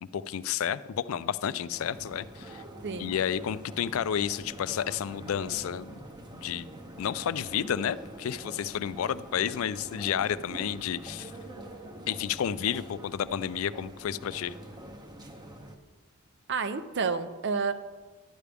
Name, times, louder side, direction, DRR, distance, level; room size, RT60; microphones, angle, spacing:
voice 1, 0.0-2.6 3.0-5.9 6.4-6.7 7.0-11.3 12.1-14.5, left 9 dB, 80° left, 16 dB, 0.4 m, -31 dB
sound 1, 1.7-15.8, right 1 dB, 20° right, 0.8 m, -45 dB
voice 2, 16.5-17.7, right 5 dB, 60° right, 11 dB, 0.6 m, -30 dB
12.0 x 9.7 x 3.4 m, 1.3 s
head